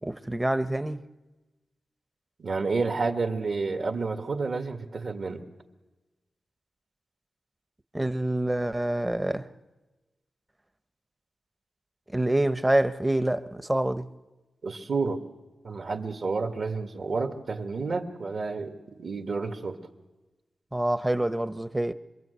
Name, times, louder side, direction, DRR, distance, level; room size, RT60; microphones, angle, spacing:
voice 1, 0.0-1.0 7.9-9.5 12.1-14.1 20.7-21.9, right 1 dB, 15° right, 0.9 m, -26 dB
voice 2, 2.4-5.4 14.6-15.2 15.6-19.8, right 4 dB, 60° right, 2.0 m, -30 dB
26.0 x 22.0 x 8.2 m
wide cardioid pair, 95°, 0 cm